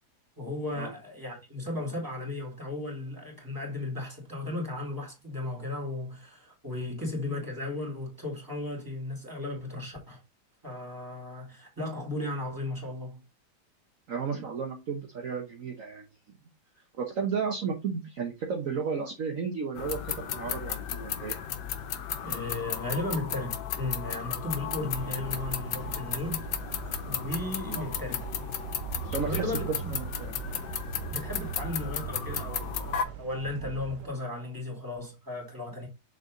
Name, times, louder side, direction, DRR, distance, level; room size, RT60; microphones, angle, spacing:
voice 1, 0.4-10.2 10.6-13.2 22.2-26.5 27.0-28.3 29.2-29.9 31.1-35.9, left 2 dB, 10° right, 2.8 m, -35 dB
voice 2, 14.1-16.1 17.0-21.4 27.6-27.8 29.0-29.5 29.9-30.4, right 5 dB, 55° right, 1.4 m, -33 dB
sound 1, 19.8-33.0, left 9 dB, 85° left, 1.5 m, -35 dB
sound 2, 24.6-34.1, right 11 dB, 75° right, 1.2 m, -40 dB
6.7 x 4.1 x 3.8 m
omnidirectional pair, 1.8 m